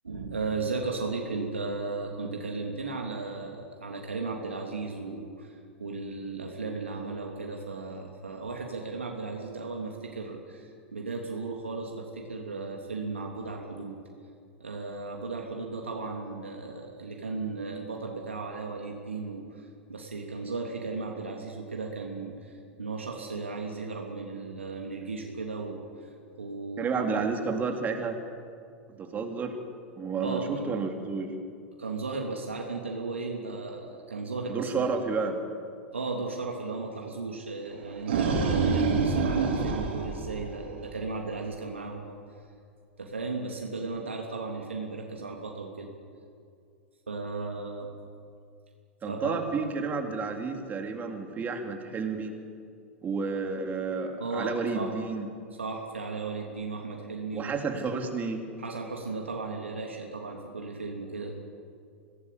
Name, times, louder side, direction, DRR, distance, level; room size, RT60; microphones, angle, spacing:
voice 1, 0.0-14.0 14.6-22.5 22.8-27.2 30.2-30.7 31.8-34.8 35.9-42.2 43.0-45.9 47.1-47.9 49.1-49.4 54.2-54.9 55.6-57.5 58.6-61.3, right 3 dB, 85° right, 0 dB, 3.0 m, -35 dB
voice 2, 26.8-28.2 28.9-29.6 30.0-31.3 34.5-35.4 49.0-52.3 53.0-55.3 57.3-58.4, right 4 dB, 25° right, 4 dB, 3.6 m, -31 dB
sound 1, 37.7-41.0, right 4 dB, 65° right, 4.8 m, -27 dB
25.5 x 18.0 x 8.7 m, 2.4 s
figure-of-eight pair, 90°, 6 cm